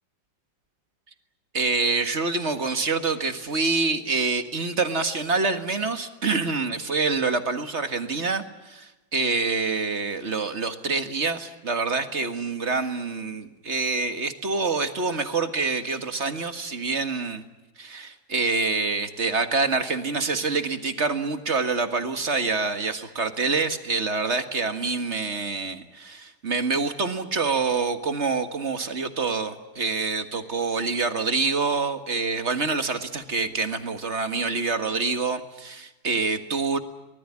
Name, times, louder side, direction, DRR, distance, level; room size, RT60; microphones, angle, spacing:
voice 1, 1.5-17.4 17.8-36.8, right 4 dB, 35° right, 9 dB, 1.9 m, -26 dB
24.0 x 19.5 x 9.7 m, 1.0 s
omnidirectional pair, 2.1 m